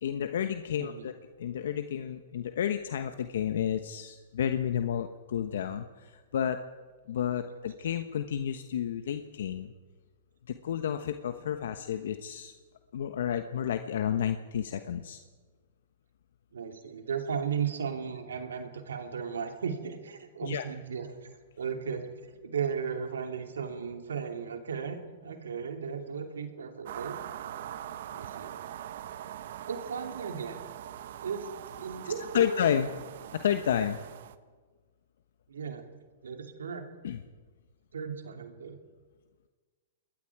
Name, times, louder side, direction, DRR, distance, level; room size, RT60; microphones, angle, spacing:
voice 1, 0.0-1.1 1.4-6.6 7.1-9.7 10.5-12.5 12.9-15.2 20.4-20.7 32.0-32.9 33.3-34.0 37.0-37.2, left 9 dB, 70° left, 8 dB, 1.1 m, -31 dB
voice 2, 16.5-21.3 21.6-22.1 22.4-27.2 28.1-28.5 29.7-30.6 31.2-31.5 31.8-32.7 35.5-35.8 36.2-36.8 37.9-38.8, right 6 dB, 85° right, 5 dB, 2.7 m, -35 dB
sound 1, 26.8-34.4, right 11 dB, 65° right, 1.1 m, -42 dB
27.5 x 21.0 x 4.8 m, 1.4 s
hypercardioid pair, 125°, 0 cm